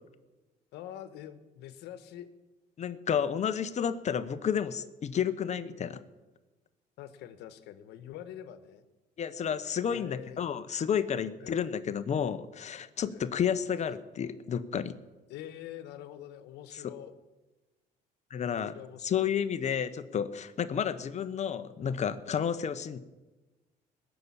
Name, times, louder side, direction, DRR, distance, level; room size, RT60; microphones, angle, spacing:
voice 1, 0.7-2.3 7.0-8.9 9.8-10.4 11.4-11.8 13.1-13.3 15.3-17.1 18.7-19.4 20.9-21.1, left 11 dB, 85° left, 11 dB, 1.3 m, -45 dB
voice 2, 2.8-6.0 9.2-15.0 16.7-16.8 18.3-18.7 19.0-23.0, left 8 dB, 45° left, 12 dB, 0.9 m, -31 dB
21.0 x 6.9 x 8.6 m, 1.1 s
cardioid pair, 110°, 17 cm